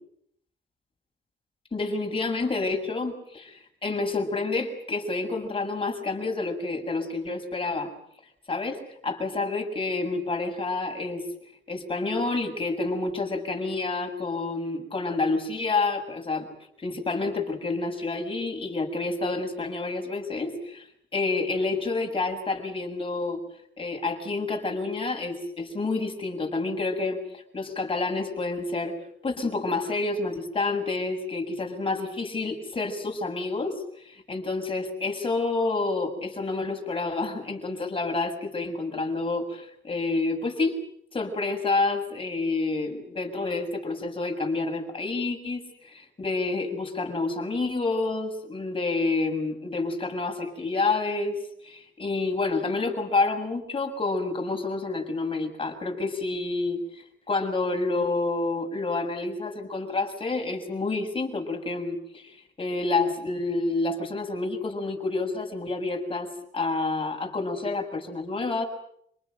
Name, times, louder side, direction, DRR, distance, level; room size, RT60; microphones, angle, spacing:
voice 1, 1.7-7.9 8.5-11.2 11.7-16.5 16.8-20.9 21.1-23.4 23.8-29.0 29.2-40.8 41.1-68.7, left 3 dB, 25° left, 3 dB, 7.0 m, -29 dB
28.0 x 19.5 x 9.2 m, 0.72 s
cardioid pair, 90°, 20 cm